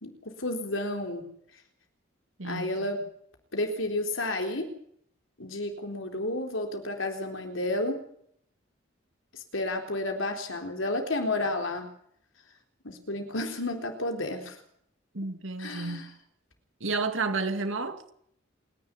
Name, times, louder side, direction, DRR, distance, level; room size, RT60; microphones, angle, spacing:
voice 1, 0.4-1.3 2.4-3.0 3.5-4.7 5.4-8.0 9.3-11.9 12.8-14.6 15.6-16.0, left 2 dB, 85° left, 4 dB, 3.9 m, -31 dB
voice 2, 2.4-2.7 15.1-16.0 16.8-18.1, right 3 dB, 80° right, 8 dB, 2.4 m, -31 dB
27.5 x 11.0 x 9.8 m, 0.68 s
head